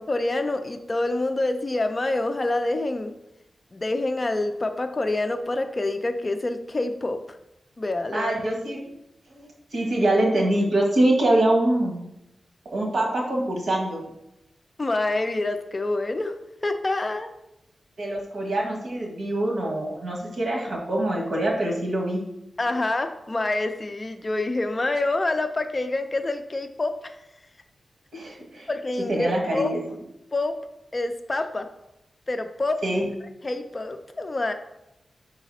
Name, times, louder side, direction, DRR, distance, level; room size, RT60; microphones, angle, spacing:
voice 1, 0.1-3.1 3.7-7.4 7.8-8.3 14.8-16.3 16.6-17.3 22.6-27.2 28.7-29.8 30.3-30.6 30.9-31.7 32.3-32.8 33.4-34.5, left 2 dB, 25° left, 7 dB, 0.4 m, -27 dB
voice 2, 8.1-8.8 9.3-12.0 12.7-14.0 18.0-22.2 28.1-28.7 29.1-29.8 32.8-33.0, right 1 dB, 80° right, -2 dB, 1.7 m, -24 dB
5.7 x 4.0 x 4.1 m, 0.87 s
wide cardioid pair, 170°, 0 cm